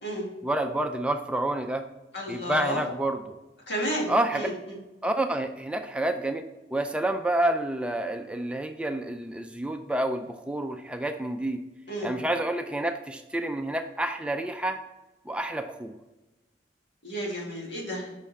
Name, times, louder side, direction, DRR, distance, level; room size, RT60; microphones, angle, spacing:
voice 1, 0.4-1.8 2.3-3.4 4.1-4.5 5.0-6.4 6.7-11.6 12.0-14.8 15.3-15.9, right 1 dB, 5° right, 5 dB, 0.4 m, -28 dB
voice 2, 2.1-2.8 3.7-4.8 11.9-12.2 17.0-18.1, equal, 80° left, -3 dB, 2.3 m, -32 dB
5.7 x 5.2 x 4.1 m, 1.0 s
head